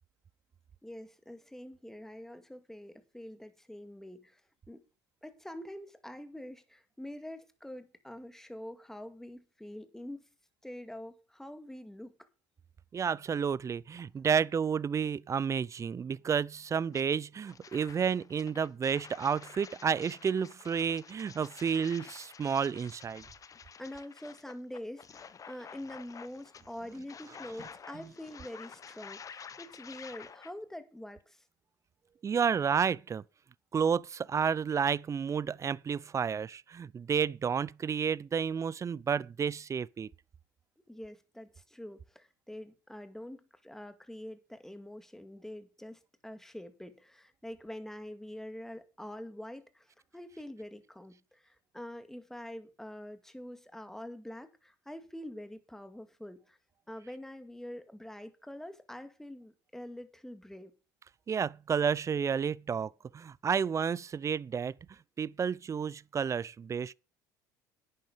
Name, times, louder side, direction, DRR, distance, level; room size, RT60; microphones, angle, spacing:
voice 1, 0.8-4.4 4.7-4.8 5.2-10.3 10.6-12.3 23.8-31.4 40.9-56.6 56.9-60.7, left 1 dB, 5° left, 2.2 m, -45 dB
voice 2, 12.9-23.2 32.2-33.2 33.7-40.1 61.3-64.7 65.2-66.9, right 7 dB, 30° right, 0.6 m, -31 dB
sound 1, 16.9-17.0 17.5-30.5, left 6 dB, 35° left, 1.1 m, -50 dB
11.0 x 9.3 x 5.1 m
hypercardioid pair, 70°, 10 cm